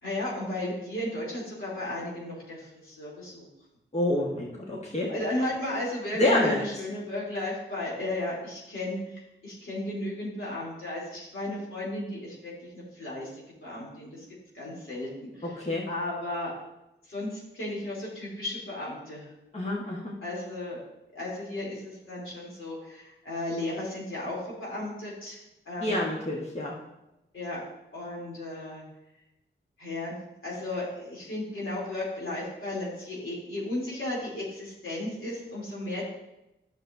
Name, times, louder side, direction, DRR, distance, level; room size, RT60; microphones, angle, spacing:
voice 1, 0.0-3.5 5.1-14.2 14.5-15.5 15.9-16.5 17.1-19.3 20.2-20.8 21.1-26.1 27.3-27.6 27.9-28.8 29.8-30.1 30.4-36.1, left 1 dB, 85° left, -6 dB, 3.1 m, -34 dB
voice 2, 3.9-5.1 6.1-6.6 15.6-15.8 19.5-20.1 25.8-26.7, left 1 dB, 35° left, -3 dB, 1.4 m, -27 dB
11.0 x 6.3 x 2.7 m, 0.92 s
wide cardioid pair, 90°, 20 cm